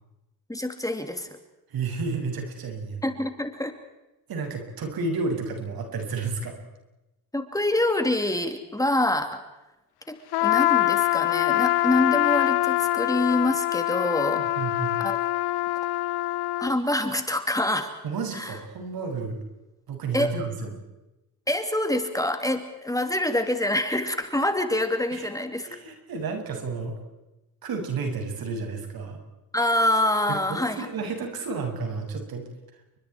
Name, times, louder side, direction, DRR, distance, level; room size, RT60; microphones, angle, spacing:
voice 1, 0.5-1.4 3.0-3.7 7.3-9.4 10.1-14.5 15.0-15.2 16.6-17.9 18.3-18.6 20.1-20.3 21.5-25.7 29.5-30.9, left 1 dB, 10° left, 6 dB, 2.8 m, -26 dB
voice 2, 1.7-3.0 4.3-6.6 14.4-15.0 18.0-19.4 19.9-20.7 25.1-25.3 25.7-26.9 27.6-29.2 30.3-32.5, right 4 dB, 70° right, 4 dB, 7.4 m, -31 dB
Trumpet, 10.3-16.8, left 16 dB, 85° left, 0.9 m, -24 dB
30.0 x 24.5 x 4.7 m, 0.97 s
cardioid pair, 100°, 37 cm